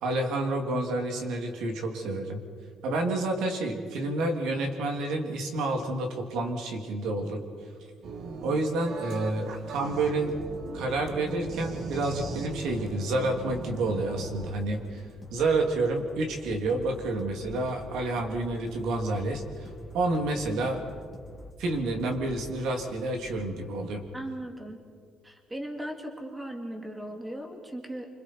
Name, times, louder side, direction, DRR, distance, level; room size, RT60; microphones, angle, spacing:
voice 1, 0.0-2.4 2.8-7.4 8.4-10.3 10.7-15.0 15.3-20.8 21.6-24.0, right 2 dB, 80° right, 3 dB, 3.0 m, -29 dB
sound 1, 8.0-14.5, right 4 dB, 55° right, 1.5 m, -39 dB
sound 2, 9.5-23.7, left 1 dB, 10° left, 2.4 m, -47 dB
voice 2, 24.1-24.8 25.2-28.1, right 1 dB, 10° right, 3 dB, 2.1 m, -38 dB
29.0 x 26.0 x 4.7 m, 2.1 s
cardioid pair, 160°, 0 cm